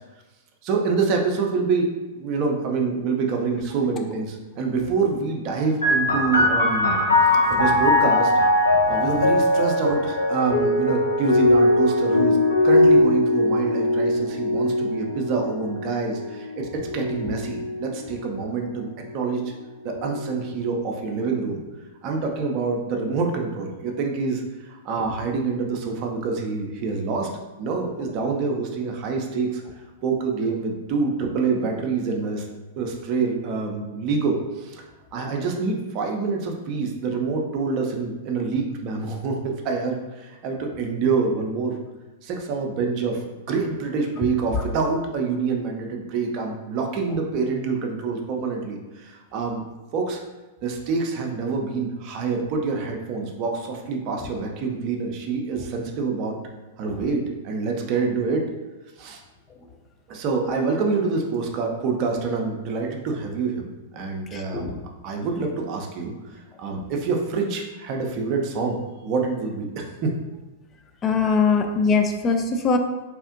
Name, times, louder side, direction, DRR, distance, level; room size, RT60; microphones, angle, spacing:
voice 1, 0.6-7.0 7.2-8.3 8.9-12.4 12.6-18.9 19.1-19.5 19.8-21.6 22.0-27.3 27.6-29.6 30.0-32.5 32.8-34.8 35.1-41.8 42.2-49.6 49.9-50.2 50.6-56.4 56.8-58.5 59.0-59.2 60.1-64.8 65.0-70.1, right 4 dB, 40° right, 1 dB, 0.5 m, -26 dB
sound 1, 5.8-19.0 19.9-20.7, left 1 dB, 85° left, 0.5 m, -21 dB
voice 2, 64.3-64.8 71.0-72.8, left 4 dB, 25° left, 5 dB, 0.3 m, -22 dB
2.8 x 2.4 x 2.4 m, 1.1 s
figure-of-eight pair, 100°, 0 cm